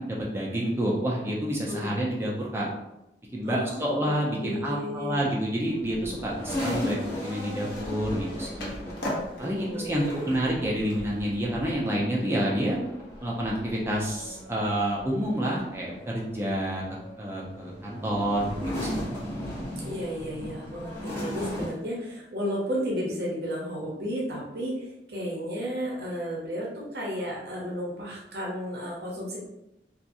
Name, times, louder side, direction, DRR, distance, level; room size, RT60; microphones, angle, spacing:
voice 1, 0.0-2.7 3.3-8.7 9.4-12.8 13.2-16.8 17.2-18.5 18.8-19.1, equal, 15° right, -4 dB, 0.5 m, -28 dB
voice 2, 1.5-1.9 3.4-5.3 9.4-10.4 19.8-29.4, equal, 65° right, -3 dB, 0.6 m, -33 dB
sound 1, 5.7-21.7, equal, 15° left, 1.1 m, -37 dB
Skateboard, 6.5-11.7, left 1 dB, 70° left, 0.7 m, -40 dB
2.8 x 2.4 x 2.5 m, 0.91 s
head